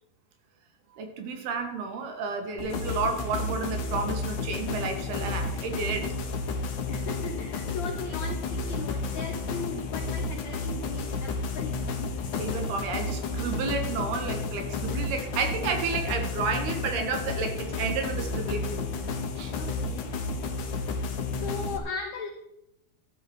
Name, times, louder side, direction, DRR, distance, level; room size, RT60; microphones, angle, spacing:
voice 1, 1.0-6.1 12.4-18.9 19.4-19.5, right 4 dB, 70° right, 5 dB, 3.6 m, -31 dB
sound 1, 2.6-21.8, left 3 dB, 60° left, 2.4 m, -32 dB
voice 2, 6.9-12.1 19.5-20.2 21.4-22.3, left 5 dB, 75° left, 4 dB, 1.6 m, -38 dB
13.0 x 12.0 x 4.5 m, 0.85 s
omnidirectional pair, 4.7 m